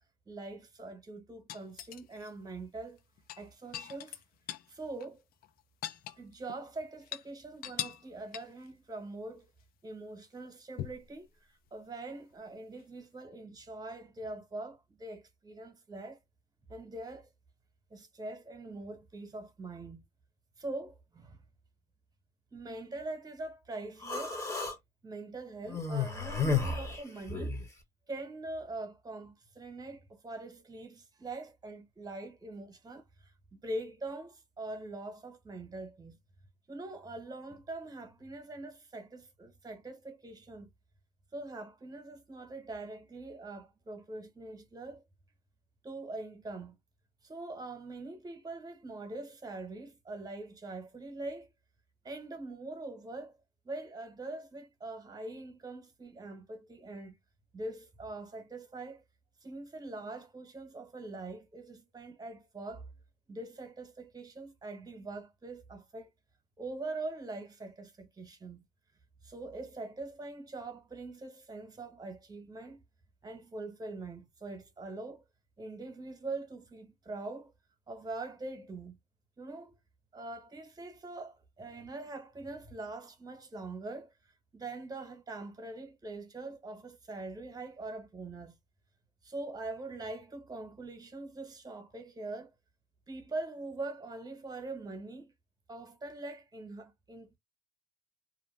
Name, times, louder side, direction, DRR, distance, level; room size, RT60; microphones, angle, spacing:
voice 1, 0.3-3.0 3.4-4.2 4.7-5.2 6.2-9.5 9.8-11.3 11.7-16.2 16.7-17.3 17.9-20.0 20.6-21.4 22.5-24.4 25.0-27.6 28.1-36.2 36.7-40.7 41.3-45.0 45.8-46.8 47.2-51.5 52.0-53.4 53.6-57.1 57.5-59.0 59.4-62.9 63.3-66.1 66.6-68.6 69.2-72.8 73.2-75.2 75.6-77.5 77.9-79.0 79.4-79.8 80.1-84.1 84.5-88.6 89.2-92.5 93.1-95.3 95.7-97.4, right 2 dB, 20° right, 1.0 m, -43 dB
sound 1, 1.5-2.3 3.2-4.7 5.0-5.1 5.4-6.6 7.0-7.3 7.6-8.1 8.3-8.7 10.8-11.1 12.8-12.9, left 11 dB, 60° left, 0.4 m, -41 dB
Human voice, 24.0-24.8 25.7-27.7, left 5 dB, 20° left, 1.0 m, -32 dB
2.6 x 2.1 x 3.2 m
cardioid pair, 110°, 17 cm